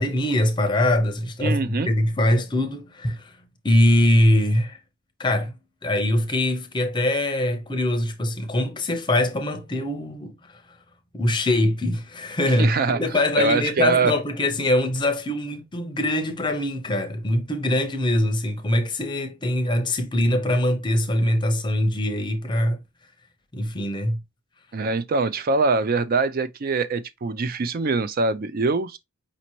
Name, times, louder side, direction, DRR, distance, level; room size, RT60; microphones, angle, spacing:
voice 1, 0.0-3.3 3.6-4.8 5.2-5.5 5.8-10.3 11.1-22.8 23.5-24.2, left 1 dB, 20° left, 0.7 m, -23 dB
voice 2, 1.4-1.9 12.6-13.1 13.4-14.1 24.7-29.0, right 3 dB, 45° right, 0.4 m, -23 dB
5.1 x 2.8 x 3.0 m
head